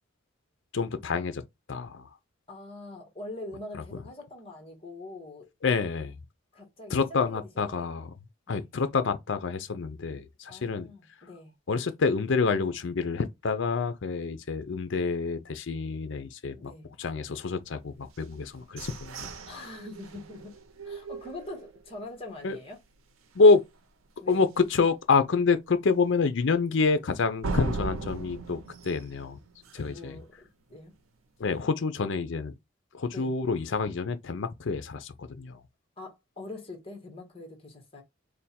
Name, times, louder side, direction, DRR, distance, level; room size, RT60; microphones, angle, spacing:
voice 1, 0.7-1.4 1.7-2.0 5.6-6.1 6.9-8.1 8.5-10.9 11.7-16.7 17.0-19.7 22.4-22.6 23.4-23.6 24.3-28.6 28.8-29.4 29.7-30.2 31.4-32.5 32.9-35.6, left 4 dB, 65° left, 0.5 m, -27 dB
voice 2, 2.5-5.5 6.5-7.9 8.5-8.7 10.5-11.5 16.6-16.9 19.4-20.6 20.8-22.8 24.2-24.4 26.0-26.2 29.8-30.3 30.7-30.9 33.1-33.3 36.0-38.0, left 2 dB, 25° left, 1.3 m, -43 dB
sound 1, 18.1-22.0 22.5-22.6 23.0-23.4 23.7-23.8 24.3-24.4 27.4-30.1, right 3 dB, 85° right, 0.7 m, -38 dB
3.3 x 2.2 x 4.2 m
head